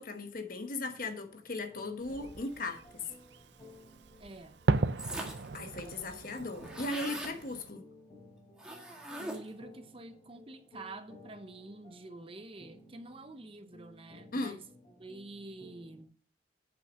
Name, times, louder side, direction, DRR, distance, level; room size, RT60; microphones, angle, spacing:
voice 1, 0.0-3.0 5.5-7.8 14.3-14.6, left 2 dB, 45° left, 1.2 m, -37 dB
sound 1, 0.8-16.0, left 1 dB, 25° left, 3.3 m, -57 dB
Fireworks, 2.0-7.7, right 3 dB, 65° right, 0.6 m, -36 dB
voice 2, 4.2-4.6 9.2-14.6 15.0-16.1, right 2 dB, 30° right, 0.8 m, -48 dB
sound 2, 5.0-5.6 5.9-6.0 6.2-7.4 8.6-9.6, right 1 dB, 5° right, 1.7 m, -41 dB
8.6 x 6.1 x 6.2 m
head